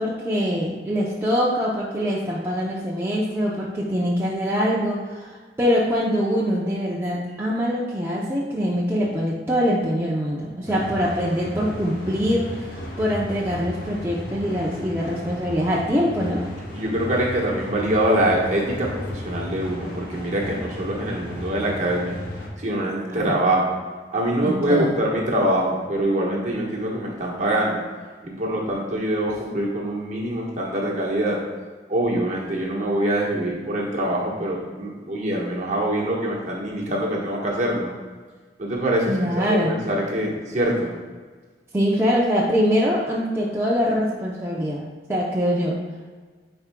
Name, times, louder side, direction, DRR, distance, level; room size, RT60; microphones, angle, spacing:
voice 1, 0.0-16.4 23.1-23.4 24.4-25.0 39.1-39.8 41.7-44.8 45.1-45.8, equal, 15° right, -6 dB, 0.6 m, -23 dB
sound 1, 10.7-22.5, left 1 dB, 55° left, 1.3 m, -35 dB
voice 2, 16.7-22.2 22.6-23.8 24.1-27.8 28.2-31.4 31.9-37.9 38.6-40.9, right 1 dB, 40° right, -3 dB, 1.3 m, -24 dB
9.5 x 4.5 x 2.2 m, 1.4 s
head